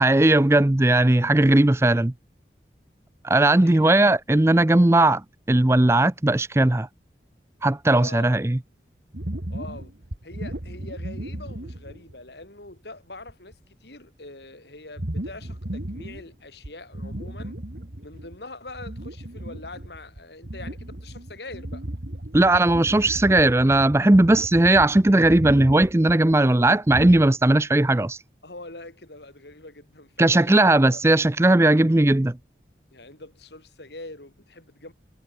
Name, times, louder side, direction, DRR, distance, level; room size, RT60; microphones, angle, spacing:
voice 1, 0.0-2.1 3.2-6.9 7.6-8.6 22.3-28.2 30.2-32.4, right 2 dB, 15° right, 0.5 m, -18 dB
voice 2, 3.6-4.2 7.9-8.4 9.5-9.9 10.2-17.6 18.0-21.9 28.4-31.0 32.9-34.9, left 2 dB, 75° left, 5.2 m, -43 dB
sound 1, 9.1-12.2 12.7-12.8 13.2-13.5 15.0-16.3 16.6-18.4 18.7-27.3, right 1 dB, 65° right, 2.0 m, -35 dB
head